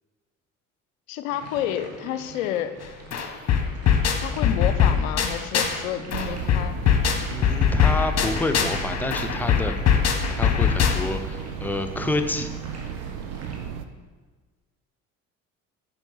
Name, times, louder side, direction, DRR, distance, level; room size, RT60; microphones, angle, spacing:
voice 1, 1.1-2.8 4.2-6.8, left 11 dB, 75° left, 11 dB, 0.6 m, -29 dB
sound 1, 1.3-13.6, right 4 dB, 40° right, 1.9 m, -43 dB
sound 2, 2.8-2.9 3.1-5.8 6.1-11.3, left 7 dB, 40° left, 1.2 m, -22 dB
sound 3, 6.1-13.8, right 9 dB, 65° right, 0.7 m, -35 dB
voice 2, 7.3-9.7 10.3-12.5, left 2 dB, 5° left, 7 dB, 0.7 m, -28 dB
9.0 x 5.4 x 5.6 m, 1.4 s
figure-of-eight pair, 55°, 41 cm